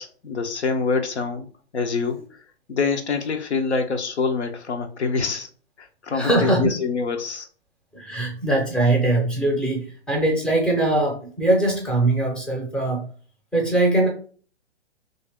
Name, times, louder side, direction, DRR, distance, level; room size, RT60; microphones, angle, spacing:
voice 1, 0.0-1.5 1.7-2.2 2.7-5.5 5.8-7.5, left 4 dB, 85° left, 6 dB, 0.8 m, -25 dB
voice 2, 6.1-6.7 7.9-13.1 13.5-14.1, right 2 dB, 5° left, 0 dB, 0.5 m, -21 dB
2.8 x 2.8 x 3.4 m, 0.42 s
hypercardioid pair, 130°, 33 cm